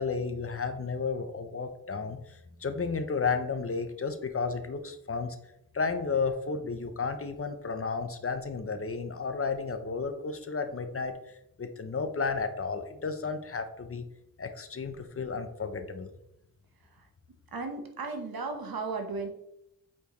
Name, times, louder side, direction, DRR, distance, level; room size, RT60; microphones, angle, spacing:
voice 1, 0.0-5.4 5.7-11.1 11.6-14.1 14.4-16.1, left 4 dB, 40° left, 8 dB, 0.7 m, -32 dB
voice 2, 17.5-19.3, right 4 dB, 85° right, 4 dB, 1.1 m, -35 dB
8.3 x 4.3 x 3.0 m, 0.81 s
wide cardioid pair, 105°, 35 cm